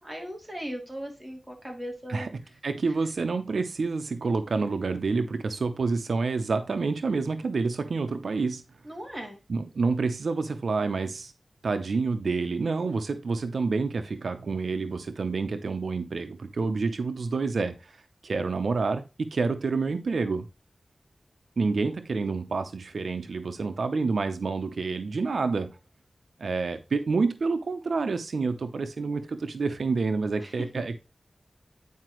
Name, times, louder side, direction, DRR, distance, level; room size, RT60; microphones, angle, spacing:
voice 1, 0.0-2.3 8.8-9.4 30.4-30.5, equal, 10° right, 3.2 m, -38 dB
voice 2, 2.6-8.6 9.5-11.3 11.6-18.0 18.2-20.5 21.6-25.7 26.4-31.0, right 4 dB, 85° right, 0.7 m, -28 dB
9.5 x 5.0 x 3.0 m
wide cardioid pair, 85°, 0 cm